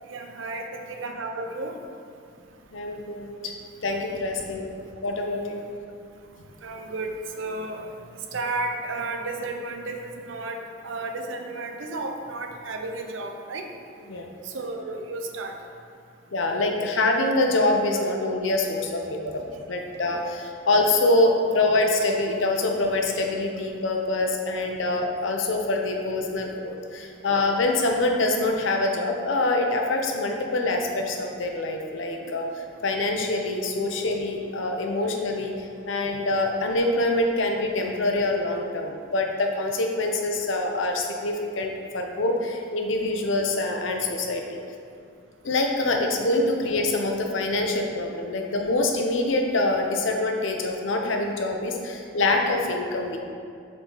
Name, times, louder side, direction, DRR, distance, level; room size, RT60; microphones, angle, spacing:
voice 1, 0.1-1.8 6.6-7.1 7.4-7.9 8.3-13.7 14.4-15.5 17.9-18.0, right 2 dB, 85° right, 4 dB, 0.6 m, -33 dB
voice 2, 2.7-3.5 3.8-4.7 5.0-5.6 14.1-14.3 16.3-19.3 19.7-35.5 35.8-44.6 45.4-53.2, left 2 dB, 85° left, 2 dB, 0.7 m, -25 dB
6.9 x 3.9 x 3.8 m, 2.3 s
head